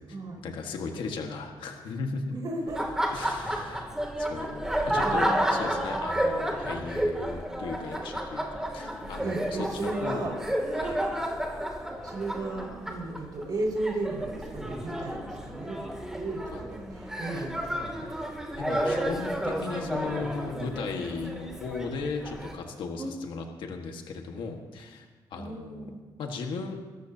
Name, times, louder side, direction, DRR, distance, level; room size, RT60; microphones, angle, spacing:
voice 1, 0.4-2.2 3.1-3.8 4.2-10.4 10.7-11.0 16.5-16.6 18.6-25.0 25.3-25.9 26.2-26.8, left 4 dB, 80° left, 3 dB, 1.6 m, -36 dB
voice 2, 2.3-3.0 5.7-6.0 9.2-10.3 12.0-18.1 23.0-23.1 25.3-26.0, right 2 dB, 55° right, -2 dB, 5.1 m, -35 dB
Laughter, 2.7-22.5, right 1 dB, 5° right, 2.6 m, -31 dB
26.0 x 14.0 x 2.9 m, 1.3 s
cardioid pair, 85°, 8 cm